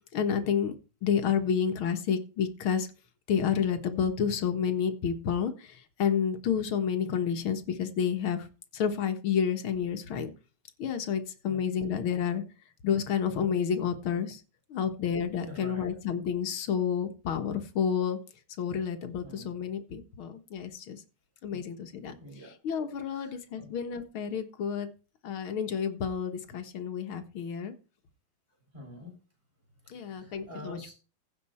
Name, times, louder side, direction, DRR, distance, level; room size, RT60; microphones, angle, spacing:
voice 1, 0.1-0.7 1.0-2.9 3.3-8.5 8.7-10.3 10.8-12.4 12.8-14.4 14.7-18.2 18.6-21.0 21.4-22.2 22.6-24.9 25.2-27.7 29.9-30.9, left 7 dB, 75° left, 8 dB, 2.3 m, -30 dB
voice 2, 15.4-15.9 19.2-19.5 21.5-21.7 22.2-22.6 23.1-23.7 28.7-29.1 29.8-30.9, left 1 dB, 30° right, -1 dB, 7.9 m, -46 dB
16.0 x 6.0 x 4.4 m, 0.33 s
omnidirectional pair, 2.3 m